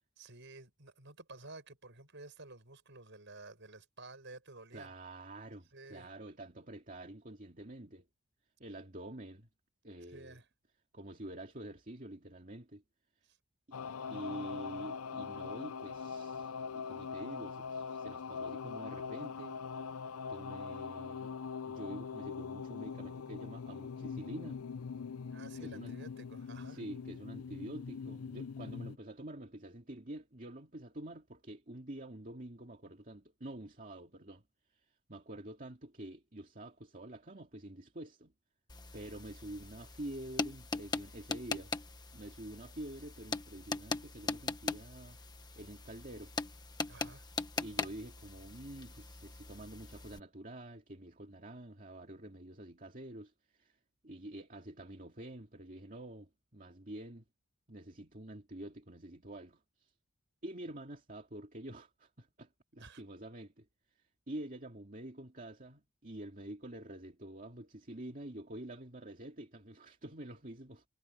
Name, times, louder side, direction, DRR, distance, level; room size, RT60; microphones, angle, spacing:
voice 1, 0.2-4.9 5.7-6.1 10.1-10.5 13.2-13.4 25.3-26.8 46.9-47.2 62.8-63.0, right 2 dB, 55° right, 7.3 m, -52 dB
voice 2, 4.7-8.1 8.6-9.5 9.8-10.4 10.9-12.8 13.7-13.8 14.1-19.6 20.3-21.3 21.6-24.6 25.6-25.9 26.7-34.4 34.7-34.8 35.1-38.3 38.9-41.7 42.1-45.2 45.6-46.3 47.6-53.8 54.0-57.2 57.7-59.9 60.4-63.7 64.3-70.8, right 1 dB, 40° right, 2.3 m, -47 dB
sound 1, 13.7-29.0, left 5 dB, 80° left, 0.6 m, -42 dB
sound 2, 38.7-50.2, left 3 dB, 20° left, 1.4 m, -41 dB
head